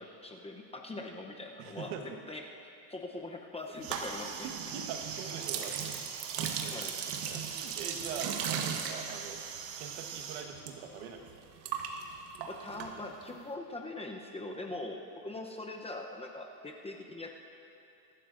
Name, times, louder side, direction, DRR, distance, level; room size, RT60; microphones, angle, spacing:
voice 1, 0.0-2.4 2.9-4.5 6.7-7.0 12.4-17.4, left 2 dB, 10° left, 1 dB, 0.7 m, -42 dB
voice 2, 1.6-2.0 4.7-6.0 6.4-9.4 9.8-11.3, right 6 dB, 70° right, 4 dB, 1.5 m, -43 dB
sound 1, 3.8-10.7 11.0-13.4, right 7 dB, 85° right, 1.4 m, -37 dB
24.5 x 12.5 x 2.6 m, 2.7 s
supercardioid pair, 130°, 49 cm